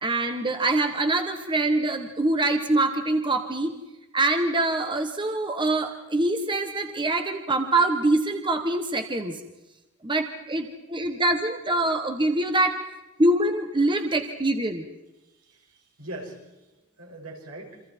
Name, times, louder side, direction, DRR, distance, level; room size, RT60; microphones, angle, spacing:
voice 1, 0.0-3.8 4.1-9.4 10.0-12.8 13.2-14.9, right 2 dB, 20° right, 6 dB, 1.2 m, -24 dB
voice 2, 15.2-17.8, right 1 dB, 80° right, 0 dB, 5.9 m, -42 dB
28.0 x 25.5 x 4.5 m, 1.0 s
head